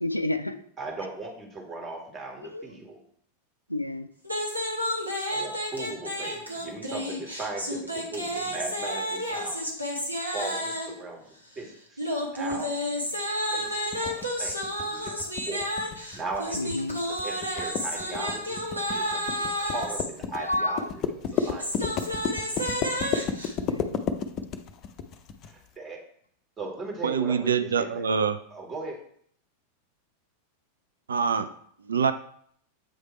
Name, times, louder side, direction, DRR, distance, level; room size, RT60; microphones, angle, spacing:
voice 1, 0.0-0.6 2.4-2.7 3.7-4.1 16.6-17.0 19.0-19.1 19.5-19.6 20.3-20.9 23.6-24.0, left 1 dB, 85° left, 10 dB, 0.4 m, -30 dB
voice 2, 0.8-3.0 5.3-9.6 10.3-11.2 11.6-12.7 13.5-14.6 14.8-15.7 16.1-20.9 21.3-21.6 21.9-22.1 22.5-22.7 25.5-26.0 26.6-28.0 28.5-29.0, right 3 dB, 20° right, 1 dB, 1.7 m, -38 dB
sound 1, 4.2-11.0 12.0-20.1 21.3-23.5, equal, 85° right, 1.3 m, -31 dB
sound 2, 13.9-25.5, left 7 dB, 35° left, 0.5 m, -32 dB
voice 3, 27.0-28.4 31.1-31.5 31.9-32.1, right 6 dB, 70° right, 10 dB, 0.4 m, -25 dB
7.8 x 3.3 x 4.3 m, 0.63 s
figure-of-eight pair, 90°, 0 cm